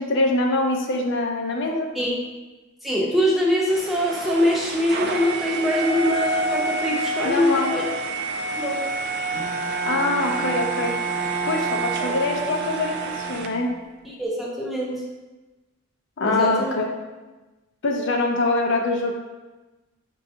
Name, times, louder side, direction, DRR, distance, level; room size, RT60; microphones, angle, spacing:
voice 1, 0.0-1.9 7.2-7.7 9.8-10.9 11.5-13.7 16.2-16.9 17.8-19.2, left 2 dB, 60° left, 2 dB, 0.5 m, -24 dB
voice 2, 2.8-7.8 8.6-8.8 14.0-15.0 16.2-16.7, left 1 dB, ahead, -5 dB, 0.6 m, -23 dB
sound 1, 3.7-13.5, right 2 dB, 50° right, 0.4 m, -29 dB
Bowed string instrument, 9.3-13.8, right 5 dB, 85° right, 0.8 m, -30 dB
6.2 x 2.3 x 2.7 m, 1.1 s
head